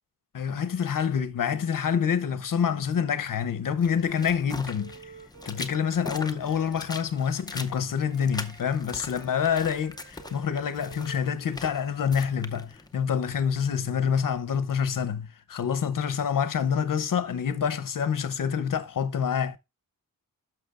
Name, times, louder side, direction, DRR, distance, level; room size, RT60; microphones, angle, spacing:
voice 1, 0.3-5.1 5.5-19.6, left 7 dB, 65° left, 0.8 m, -27 dB
Wind instrument woodwind instrument, 3.7-7.7 8.0-12.3, right 5 dB, 80° right, 1.5 m, -53 dB
sound 1, 3.8-13.8, left 2 dB, 10° left, 0.6 m, -42 dB
11.0 x 6.1 x 2.5 m
wide cardioid pair, 115°, 35 cm